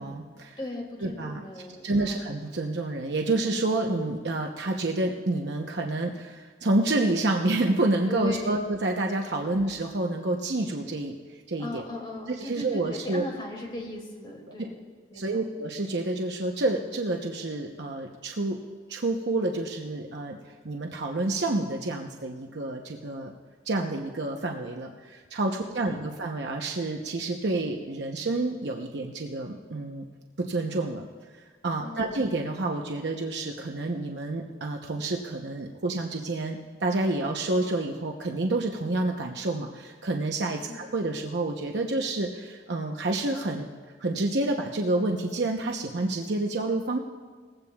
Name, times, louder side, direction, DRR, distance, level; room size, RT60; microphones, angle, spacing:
voice 1, 0.0-0.6 1.0-1.4 1.8-11.2 11.5-11.8 12.3-13.3 15.1-18.6 18.9-20.4 20.6-23.3 23.6-30.1 30.4-31.1 31.6-43.7 44.0-47.0, right 2 dB, 75° right, 2 dB, 0.8 m, -28 dB
voice 2, 0.6-2.3 8.1-8.6 9.4-9.6 11.6-14.7 15.1-15.2 25.6-26.0 31.8-32.3 40.7-40.9, left 1 dB, 25° left, -1 dB, 2.3 m, -38 dB
20.0 x 15.5 x 2.3 m, 1.5 s
head